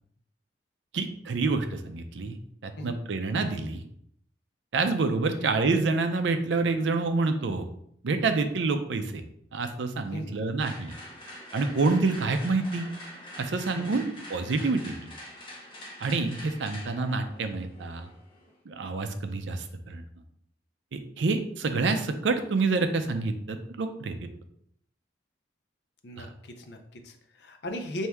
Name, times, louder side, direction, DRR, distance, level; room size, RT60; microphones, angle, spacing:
voice 1, 0.9-2.4 2.6-3.8 4.7-7.7 8.0-9.2 9.5-10.9 11.5-12.9 13.4-15.1 16.0-18.1 18.7-20.0 20.9-24.2 26.2-26.3, right 3 dB, 75° right, 8 dB, 0.5 m, -27 dB
sound 1, 10.6-18.6, left 1 dB, 25° left, 0.8 m, -45 dB
voice 2, 26.0-28.1, left 1 dB, 65° left, 6 dB, 0.6 m, -38 dB
4.5 x 2.7 x 3.4 m, 0.69 s
head